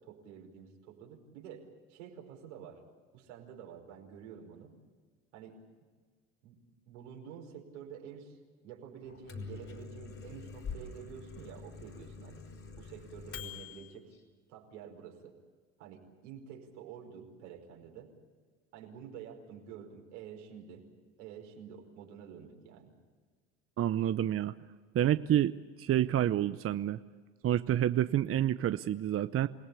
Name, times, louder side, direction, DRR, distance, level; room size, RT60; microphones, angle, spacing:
voice 1, 0.0-2.8 3.1-4.8 5.3-5.6 6.4-12.5 12.7-14.1 14.5-15.4 15.8-18.1 18.7-20.9 21.2-22.9, right 8 dB, 85° right, 2 dB, 5.1 m, -49 dB
Microwave oven, 9.1-13.9, left 5 dB, 40° left, 4.9 m, -45 dB
voice 2, 23.8-24.5 24.9-27.0 27.4-29.5, right 11 dB, 40° right, 12 dB, 0.8 m, -28 dB
28.0 x 18.5 x 8.5 m, 1.5 s
hypercardioid pair, 80°, 36 cm